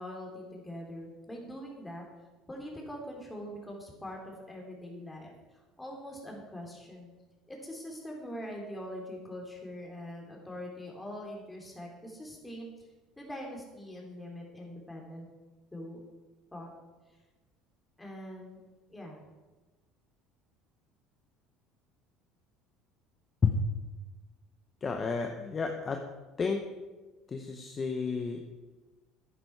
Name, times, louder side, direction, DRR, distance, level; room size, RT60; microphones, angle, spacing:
voice 1, 0.0-2.0 2.5-7.1 7.5-12.7 13.2-15.2 15.7-16.0 16.5-16.7 18.0-18.6 18.9-19.2, equal, 10° left, -1 dB, 3.2 m, -43 dB
voice 2, 24.8-26.0 26.4-26.6 27.3-28.4, left 5 dB, 30° left, 4 dB, 1.0 m, -31 dB
10.0 x 10.0 x 4.7 m, 1.2 s
supercardioid pair, 110°, 0 cm